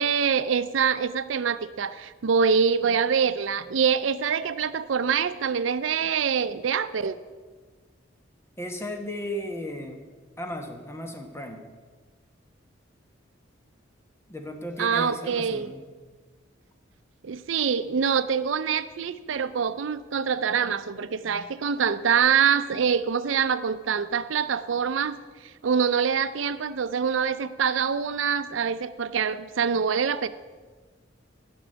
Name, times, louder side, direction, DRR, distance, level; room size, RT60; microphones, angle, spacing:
voice 1, 0.0-7.2 14.8-15.7 17.2-25.2 25.6-30.3, right 6 dB, 85° right, 14 dB, 0.5 m, -25 dB
voice 2, 8.6-10.0 10.4-11.6 14.3-15.8, equal, 15° left, 4 dB, 1.2 m, -35 dB
11.0 x 6.0 x 8.0 m, 1.4 s
head